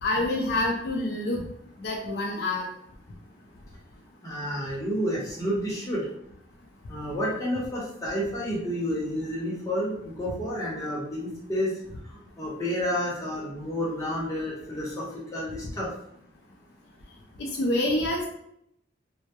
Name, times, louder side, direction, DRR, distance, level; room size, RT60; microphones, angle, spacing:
voice 1, 0.0-1.4 1.8-2.6 17.4-18.3, left 1 dB, 60° left, 0 dB, 0.4 m, -27 dB
voice 2, 4.2-6.0 6.9-11.7 12.1-15.9, equal, 15° left, -6 dB, 0.7 m, -30 dB
2.2 x 2.0 x 2.8 m, 0.74 s
head